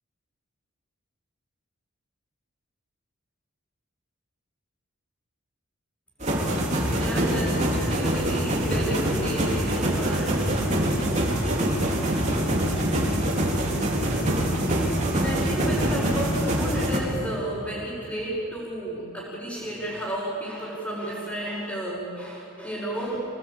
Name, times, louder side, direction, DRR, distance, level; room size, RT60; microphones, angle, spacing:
sound 1, 6.2-17.0, right 1 dB, 35° right, 3.6 m, -24 dB
voice 1, 6.8-10.5 15.1-23.3, right 1 dB, 5° left, -9 dB, 5.7 m, -32 dB
26.5 x 19.0 x 8.7 m, 2.8 s
head